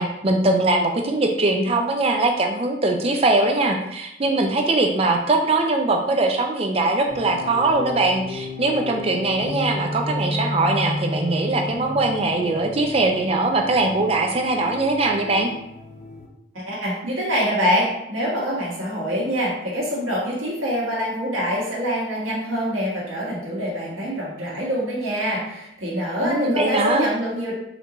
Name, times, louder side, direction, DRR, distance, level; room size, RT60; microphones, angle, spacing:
voice 1, 0.0-15.5 26.2-27.1, right 2 dB, 30° right, 3 dB, 0.4 m, -21 dB
sound 1, 7.1-16.3, left 2 dB, 40° left, 0.6 m, -33 dB
voice 2, 16.5-27.5, equal, 90° right, -6 dB, 1.5 m, -25 dB
4.3 x 2.6 x 2.9 m, 0.82 s
head